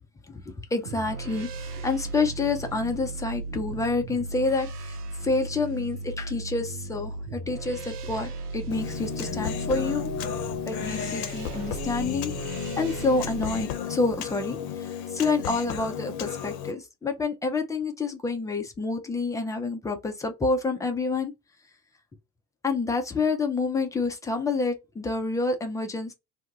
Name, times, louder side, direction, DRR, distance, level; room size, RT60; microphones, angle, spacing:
voice 1, 0.3-10.1 10.7-12.3 12.8-21.3 22.6-26.1, left 3 dB, 10° left, 0.3 m, -28 dB
sound 1, 0.9-13.7, right 3 dB, 85° right, 0.5 m, -36 dB
Human voice, 8.7-16.7, left 9 dB, 50° left, 0.7 m, -33 dB
2.2 x 2.0 x 3.7 m
figure-of-eight pair, 65°, 45 cm